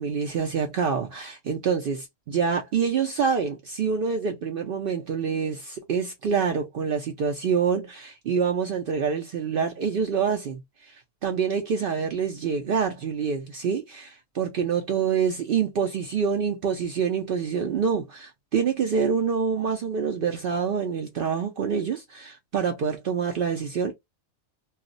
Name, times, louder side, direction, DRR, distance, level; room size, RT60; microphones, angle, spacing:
voice 1, 0.0-10.6 10.9-23.9, right 6 dB, 75° right, 0.5 m, -26 dB
2.4 x 2.0 x 3.8 m
omnidirectional pair, 1.5 m